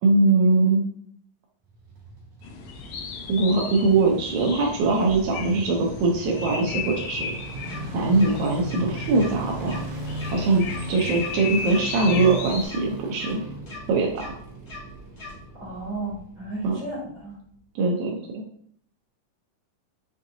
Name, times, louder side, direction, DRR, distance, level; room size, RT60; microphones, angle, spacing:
voice 1, 0.0-0.8 3.3-7.3 7.9-9.8 10.3-10.6 10.9-13.4 13.9-14.3 16.6-16.8 17.7-18.4, right 3 dB, 85° right, 0 dB, 1.6 m, -22 dB
sound 1, 1.7-16.9 17.1-17.2, right 3 dB, 65° right, 2.1 m, -37 dB
sound 2, 2.4-12.7, left 6 dB, 80° left, 2.0 m, -36 dB
sound 3, 7.7-7.8 8.2-8.3 8.7-8.8 9.2-9.3 9.6-9.8 10.2-10.3 10.7-10.8 11.2-11.3 11.7-11.8 12.2-12.3 12.7-12.8 13.2-13.3 13.7-13.8 14.2-14.3 14.7-14.8 15.2-15.3, left 3 dB, 55° left, 1.3 m, -39 dB
voice 2, 15.6-17.3, right 2 dB, 50° right, -9 dB, 0.9 m, -33 dB
5.9 x 2.6 x 2.7 m, 0.66 s
omnidirectional pair, 4.0 m